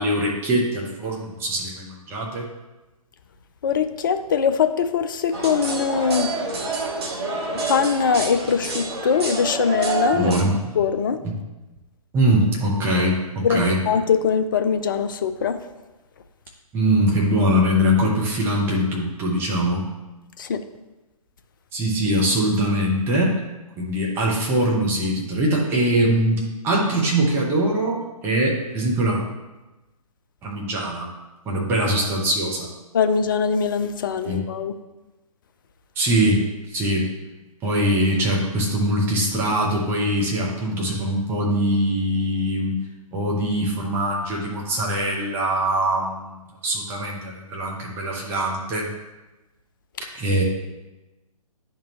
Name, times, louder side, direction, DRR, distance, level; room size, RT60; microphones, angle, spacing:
voice 1, 0.0-2.5 10.1-10.6 11.2-11.3 12.1-13.8 16.7-19.8 21.7-23.4 23.8-29.2 30.4-31.1 31.5-32.7 34.2-34.4 36.0-36.4 36.7-37.1 37.6-42.8 43.1-46.4 46.6-48.9 50.1-50.4, right 1 dB, 10° right, -3 dB, 0.9 m, -22 dB
voice 2, 3.6-6.3 7.7-10.3 10.8-11.2 13.4-15.6 20.4-20.6 32.9-34.7, left 6 dB, 35° left, 10 dB, 0.4 m, -22 dB
sound 1, 5.3-10.4, right 3 dB, 45° right, 1.0 m, -28 dB
10.0 x 3.6 x 3.0 m, 1.1 s
figure-of-eight pair, 130°, 19 cm